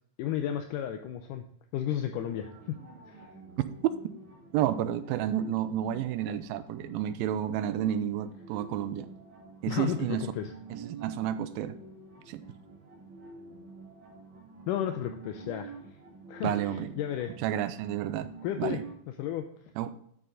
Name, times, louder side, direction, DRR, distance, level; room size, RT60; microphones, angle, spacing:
voice 1, 0.2-1.5 1.7-2.8 3.1-3.3 9.7-10.5 14.7-15.7 16.3-17.3 18.4-18.8 19.2-19.5, left 10 dB, 80° left, 7 dB, 2.0 m, -33 dB
sound 1, 2.2-18.9, right 4 dB, 60° right, 3.7 m, -48 dB
voice 2, 4.5-9.1 9.6-10.2 10.7-11.8 12.3-12.4 16.4-16.9 17.4-18.3 18.6-18.8 19.8-19.9, right 11 dB, 85° right, 12 dB, 2.4 m, -31 dB
8.7 x 6.7 x 3.8 m, 0.68 s
omnidirectional pair, 4.1 m